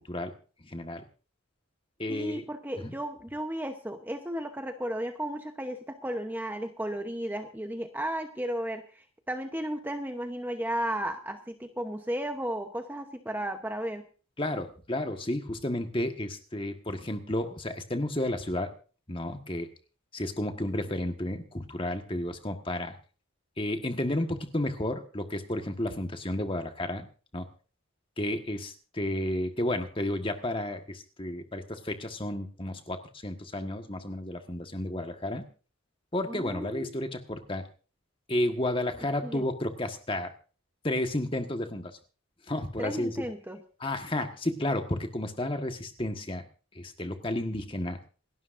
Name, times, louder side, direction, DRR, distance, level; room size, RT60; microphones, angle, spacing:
voice 1, 0.7-1.0 2.0-2.4 14.4-18.7 19.1-19.7 20.1-22.9 23.6-27.1 27.3-27.5 28.2-33.0 33.2-35.5 36.1-37.6 38.3-40.3 40.8-41.9 42.5-43.2 43.8-46.4 46.7-48.0, left 1 dB, 25° left, 6 dB, 1.5 m, -32 dB
voice 2, 2.1-14.1 36.3-36.9 39.2-39.4 42.8-43.6, right 1 dB, 10° right, 5 dB, 0.9 m, -34 dB
27.5 x 12.0 x 2.6 m, 0.38 s
head